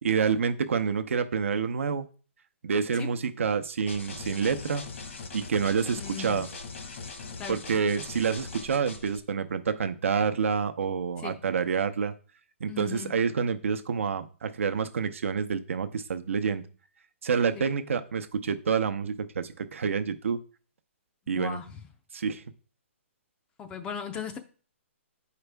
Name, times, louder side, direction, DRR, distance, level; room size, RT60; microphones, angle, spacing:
voice 1, 0.0-2.1 2.6-4.8 5.3-6.5 7.5-12.1 12.6-16.6 17.2-20.4 21.3-21.6 22.1-22.4, right 6 dB, 75° right, 9 dB, 0.8 m, -28 dB
sound 1, 3.9-9.2, left 4 dB, 70° left, 1.4 m, -41 dB
voice 2, 5.9-6.5 7.4-7.6 11.2-11.4 12.7-13.2 17.6-17.7 21.4-21.8 23.6-24.4, left 7 dB, 15° left, 8 dB, 0.5 m, -38 dB
8.0 x 5.0 x 3.4 m, 0.39 s
hypercardioid pair, 160°, 7 cm